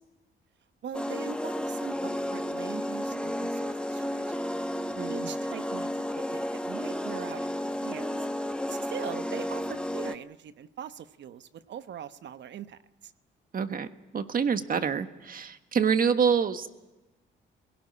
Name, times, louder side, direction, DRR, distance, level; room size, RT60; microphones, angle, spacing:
voice 1, 0.8-4.6 5.1-5.9 6.2-8.2 8.7-13.1, right 9 dB, 65° right, 11 dB, 1.0 m, -42 dB
sound 1, 0.9-10.2, left 1 dB, 5° left, 1.2 m, -32 dB
voice 2, 5.0-5.3 13.5-13.9 14.1-16.7, right 6 dB, 45° right, 9 dB, 1.5 m, -26 dB
23.0 x 17.5 x 9.8 m, 1.1 s
cardioid pair, 90°, 20 cm